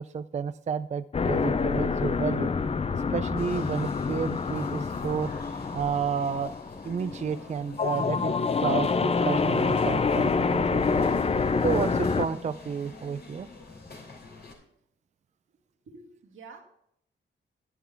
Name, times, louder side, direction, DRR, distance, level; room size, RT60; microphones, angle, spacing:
voice 1, 0.0-2.5 2.9-5.3 5.7-6.5 6.8-11.1 11.6-13.5, right 6 dB, 35° right, 13 dB, 0.4 m, -31 dB
sound 1, 1.1-12.3, left 4 dB, 30° left, 0.5 m, -27 dB
sound 2, 3.4-14.5, left 3 dB, 55° left, 3.2 m, -46 dB
voice 2, 15.9-16.6, right 4 dB, 85° right, 0 dB, 2.1 m, -48 dB
10.5 x 10.0 x 3.5 m, 0.74 s
cardioid pair, 90°, 20 cm